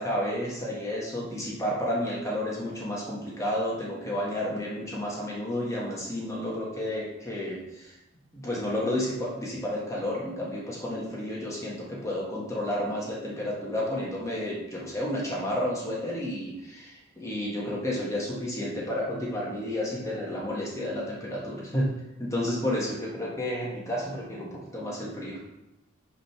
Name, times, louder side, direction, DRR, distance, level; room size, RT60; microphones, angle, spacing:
voice 1, 0.0-7.9 8.4-21.9 22.2-25.4, left 1 dB, 15° left, -5 dB, 1.5 m, -31 dB
5.1 x 5.0 x 5.9 m, 0.91 s
head